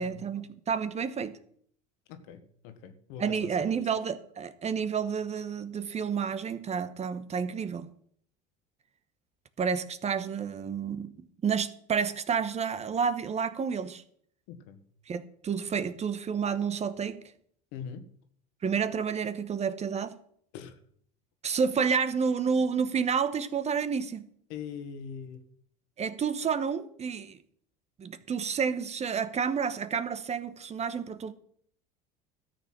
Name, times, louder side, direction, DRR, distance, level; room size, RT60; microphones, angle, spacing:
voice 1, 0.0-1.4 3.2-7.9 9.6-14.0 15.1-17.2 18.6-20.2 21.4-24.3 26.0-27.4 28.0-31.3, right 6 dB, 35° right, 1.1 m, -30 dB
voice 2, 2.1-3.7 14.5-14.8 17.7-18.1 20.5-20.8 24.5-25.4, left 7 dB, 70° left, 1.6 m, -42 dB
13.0 x 7.1 x 6.1 m
supercardioid pair, 85°, 20 cm